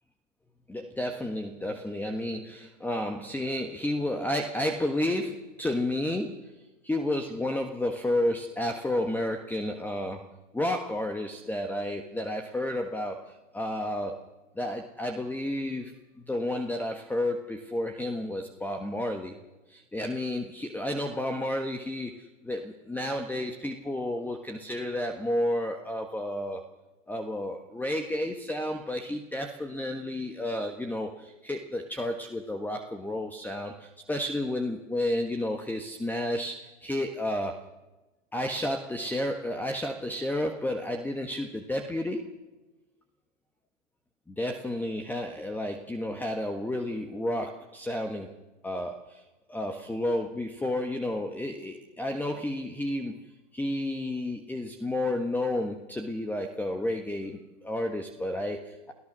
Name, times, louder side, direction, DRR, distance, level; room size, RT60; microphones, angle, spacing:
voice 1, 0.7-6.5 6.8-10.3 10.5-14.2 14.5-15.9 16.3-19.4 19.7-26.6 27.1-37.6 38.3-42.3 44.3-48.3 48.6-49.2 49.5-53.2 53.5-58.9, left 1 dB, 5° left, 4 dB, 1.5 m, -31 dB
29.0 x 16.5 x 6.3 m, 1.1 s
hypercardioid pair, 110°, 37 cm